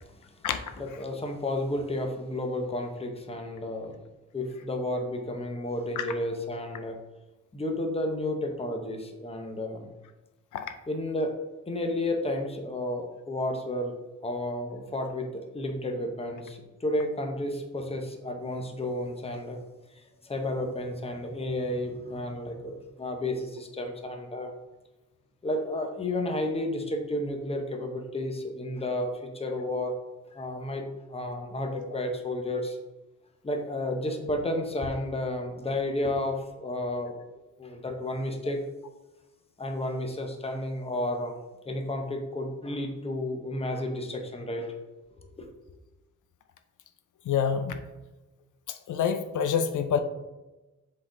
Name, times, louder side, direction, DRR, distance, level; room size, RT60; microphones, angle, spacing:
voice 1, 0.8-4.0 4.3-7.0 7.5-9.9 10.9-11.3 11.7-13.9 14.2-19.6 20.2-24.5 25.4-29.9 30.3-32.8 33.4-37.2 37.6-38.6 39.6-41.3 41.7-44.7 45.4-45.5, left 1 dB, 20° left, 4 dB, 0.8 m, -32 dB
voice 2, 47.3-47.8 48.7-50.0, left 7 dB, 85° left, 7 dB, 0.6 m, -27 dB
7.5 x 3.9 x 3.8 m, 1.1 s
wide cardioid pair, 135°, 30 cm